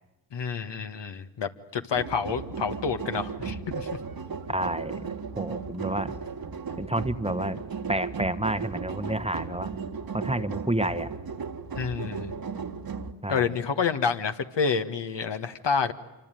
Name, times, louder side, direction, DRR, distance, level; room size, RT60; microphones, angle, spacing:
voice 1, 0.3-3.9 11.8-12.3 13.3-15.9, left 6 dB, 60° left, 7 dB, 1.8 m, -28 dB
sound 1, 1.9-13.1, right 5 dB, 50° right, 1.8 m, -35 dB
voice 2, 4.5-5.0 5.4-6.1 6.8-7.6 7.9-9.7 10.1-11.1 13.2-13.5, right 1 dB, 15° right, 11 dB, 1.3 m, -29 dB
26.0 x 24.5 x 9.2 m, 1.0 s
supercardioid pair, 45°, 47 cm